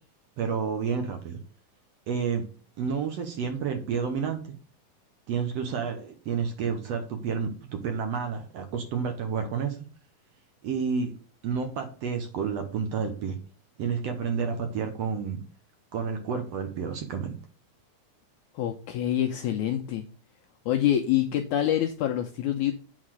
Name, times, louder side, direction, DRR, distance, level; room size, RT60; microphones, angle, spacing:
voice 1, 0.4-1.4 2.1-2.5 2.8-4.5 5.3-9.8 10.6-11.1 11.4-13.4 13.8-15.4 15.9-17.3, right 6 dB, 65° right, 6 dB, 1.6 m, -30 dB
voice 2, 18.6-20.1 20.7-22.7, left 11 dB, 80° left, 4 dB, 1.8 m, -26 dB
8.7 x 4.1 x 6.3 m, 0.37 s
omnidirectional pair, 4.0 m